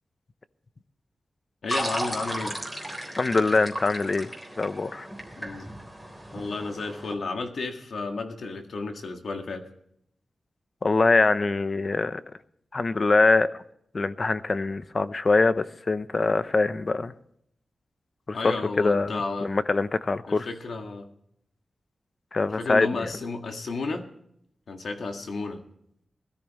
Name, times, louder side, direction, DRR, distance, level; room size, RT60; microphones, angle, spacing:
voice 1, 1.6-2.6 5.4-5.7 6.3-9.7 18.3-19.5 20.3-21.1 22.6-24.1 24.7-25.6, left 3 dB, 75° left, 5 dB, 1.7 m, -32 dB
sound 1, 1.7-7.1, right 1 dB, 5° left, 3.6 m, -35 dB
voice 2, 3.2-4.3 4.6-5.1 10.8-12.2 12.7-13.5 13.9-17.1 18.3-20.5 22.3-23.1, left 3 dB, 40° left, 13 dB, 0.7 m, -23 dB
20.5 x 13.5 x 3.1 m, 0.72 s
wide cardioid pair, 110°, 0 cm